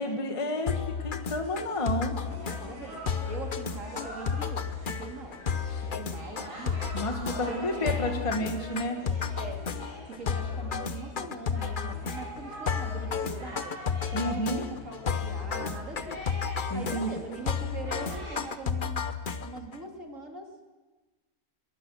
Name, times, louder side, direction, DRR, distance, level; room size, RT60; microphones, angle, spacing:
voice 1, 0.0-2.2 5.7-5.8 6.9-9.0 14.1-14.6 16.7-17.1, left 1 dB, 20° left, 5 dB, 1.5 m, -31 dB
sound 1, 0.7-19.8, left 6 dB, 40° left, 0.9 m, -33 dB
sound 2, 1.2-18.4, equal, 90° right, 8.4 m, -44 dB
voice 2, 2.2-5.4 5.8-7.0 7.5-7.8 8.1-8.5 9.3-9.6 10.1-13.8 14.1-16.2 16.7-19.1 19.4-20.5, right 3 dB, 50° right, 2 dB, 3.1 m, -42 dB
22.5 x 21.0 x 6.4 m, 1.2 s
omnidirectional pair, 1.7 m